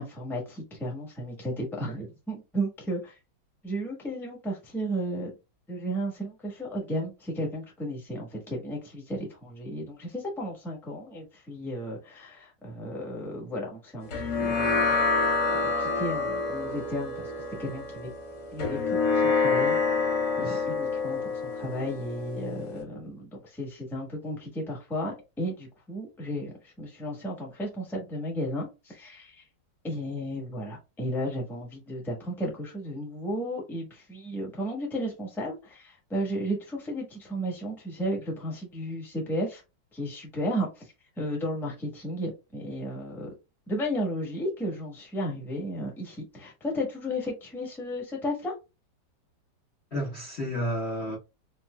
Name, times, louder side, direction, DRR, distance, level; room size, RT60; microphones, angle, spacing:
voice 1, 0.0-3.2 3.6-5.3 5.7-18.1 18.5-19.8 20.4-29.4 29.8-39.6 39.9-43.3 43.7-48.5, equal, ahead, 0.9 m, -34 dB
sound 1, 14.1-22.8, left 4 dB, 60° left, 1.5 m, -27 dB
voice 2, 49.9-51.2, equal, 45° left, 1.0 m, -31 dB
4.1 x 2.8 x 2.2 m
omnidirectional pair, 1.9 m